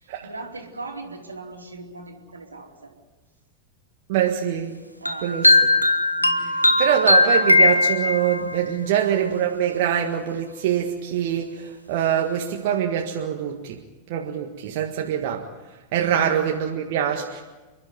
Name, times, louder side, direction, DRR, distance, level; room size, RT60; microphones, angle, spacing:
voice 1, 0.0-2.9 5.0-5.3 6.2-6.6 7.2-7.3 8.8-9.0, right 3 dB, 80° right, 3 dB, 2.9 m, -39 dB
voice 2, 4.1-4.7 5.2-5.6 6.4-6.5 6.8-13.8 14.1-15.5 15.9-17.4, right 9 dB, 50° right, 2 dB, 1.7 m, -24 dB
sound 1, 5.1-8.6, left 2 dB, 90° left, 1.2 m, -18 dB
29.0 x 11.5 x 9.6 m, 1.2 s
figure-of-eight pair, 90°, 0 cm